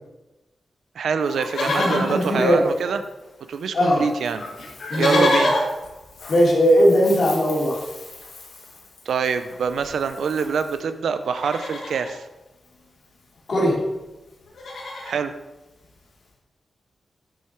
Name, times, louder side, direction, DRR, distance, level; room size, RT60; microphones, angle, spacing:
voice 1, 1.0-3.0 3.5-4.4 5.0-5.5 9.1-12.2 15.0-15.3, right 6 dB, 80° right, 10 dB, 0.5 m, -25 dB
Livestock farm animals working animals, 1.3-3.3 3.5-3.6 3.9-10.8 11.2-12.1 13.4-13.5 13.6-13.9 14.3-15.2 15.8-15.9, left 2 dB, 65° left, 1.8 m, -30 dB
voice 2, 1.7-2.6 3.7-4.0 4.9-5.5 6.3-7.8 13.5-13.8, equal, 45° left, -4 dB, 2.7 m, -19 dB
8.4 x 6.4 x 4.5 m, 1.1 s
wide cardioid pair, 160°, 0 cm